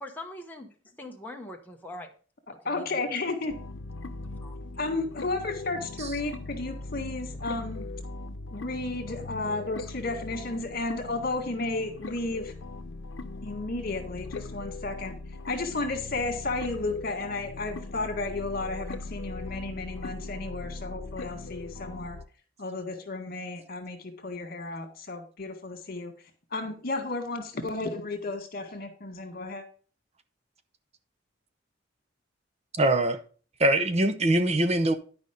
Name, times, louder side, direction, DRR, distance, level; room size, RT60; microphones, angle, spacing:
voice 1, 0.0-2.1 2.7-3.1 4.4-4.6, left 1 dB, 10° left, 0.9 m, -42 dB
voice 2, 2.7-3.5 4.8-7.9 8.5-12.5 13.4-15.1 15.5-22.2 22.6-26.1 26.5-29.6, left 2 dB, 55° left, 1.9 m, -33 dB
sound 1, 3.5-22.2, left 3 dB, 75° left, 0.8 m, -40 dB
voice 3, 32.8-33.2 33.6-34.9, right 1 dB, 35° right, 0.7 m, -23 dB
10.5 x 5.3 x 5.2 m
head